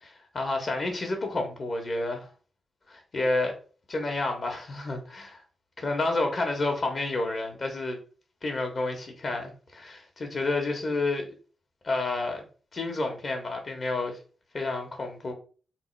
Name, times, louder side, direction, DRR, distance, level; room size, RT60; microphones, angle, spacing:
voice 1, 0.0-2.3 2.9-3.5 3.9-5.4 5.8-8.0 8.4-11.3 11.8-12.4 12.7-14.2 14.5-15.3, left 2 dB, 45° left, 1.4 m, -30 dB
3.6 x 2.5 x 4.6 m
cardioid pair, 80°, 0 cm